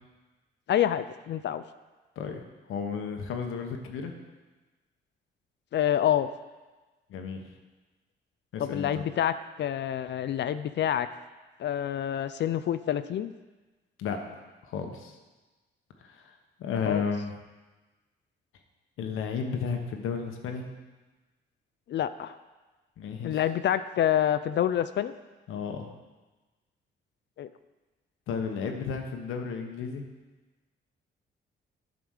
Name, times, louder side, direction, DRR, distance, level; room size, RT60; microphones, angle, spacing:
voice 1, 0.7-1.6 5.7-6.3 8.6-11.1 11.6-13.3 16.8-17.0 21.9-22.4 23.2-25.1 27.4-27.5, left 10 dB, 60° left, 13 dB, 0.4 m, -27 dB
voice 2, 2.7-4.1 7.1-7.4 8.5-9.0 14.0-15.2 16.0-16.3 16.6-17.3 19.0-20.6 23.0-23.4 25.5-25.9 28.3-30.0, left 6 dB, 90° left, 4 dB, 1.1 m, -33 dB
9.4 x 5.0 x 6.5 m, 1.2 s
cardioid pair, 100°, 21 cm